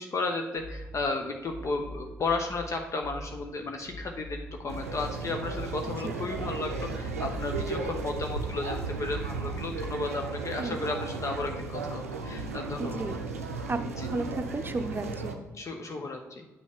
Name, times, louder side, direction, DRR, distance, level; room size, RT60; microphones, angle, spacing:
voice 1, 0.0-13.0 14.0-14.1 15.5-16.5, left 3 dB, 40° left, 4 dB, 0.8 m, -34 dB
sound 1, 0.5-10.0, left 1 dB, 70° left, 2.4 m, -43 dB
sound 2, 4.7-15.4, right 4 dB, 85° right, 0.5 m, -35 dB
voice 2, 12.8-13.2 13.7-15.4, right 2 dB, 25° right, 9 dB, 0.7 m, -33 dB
8.4 x 6.1 x 3.5 m, 1.2 s
figure-of-eight pair, 40°, 8 cm